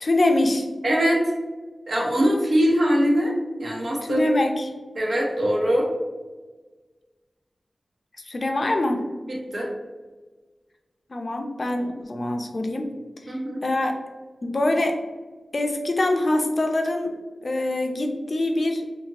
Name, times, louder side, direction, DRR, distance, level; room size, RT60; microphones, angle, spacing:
voice 1, 0.0-0.7 4.0-4.7 8.3-9.0 11.1-12.9 13.3-14.0 14.4-15.0 15.5-17.1 17.4-18.8, left 1 dB, 55° left, 4 dB, 0.4 m, -24 dB
voice 2, 0.8-1.2 1.9-3.3 3.6-4.3 4.9-5.9 9.3-9.7 13.3-13.6, equal, 70° right, -2 dB, 0.8 m, -22 dB
2.7 x 2.5 x 2.8 m, 1.3 s
wide cardioid pair, 60°, 0 cm